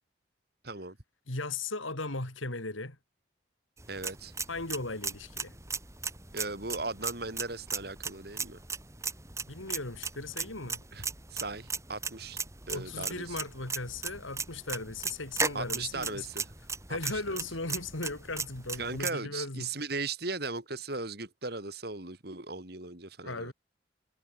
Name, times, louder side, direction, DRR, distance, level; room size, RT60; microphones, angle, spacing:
voice 1, 0.6-1.0 3.9-4.3 6.3-8.6 10.9-11.0 11.3-12.4 12.7-13.3 15.5-16.5 16.9-17.0 18.8-23.5, right 3 dB, 55° right, 3.0 m, -37 dB
voice 2, 1.3-3.0 4.5-5.6 9.5-10.8 12.7-16.3 16.9-19.7 23.2-23.5, left 3 dB, 90° left, 3.9 m, -37 dB
sound 1, 3.8-19.1, right 4 dB, 15° right, 4.5 m, -37 dB
head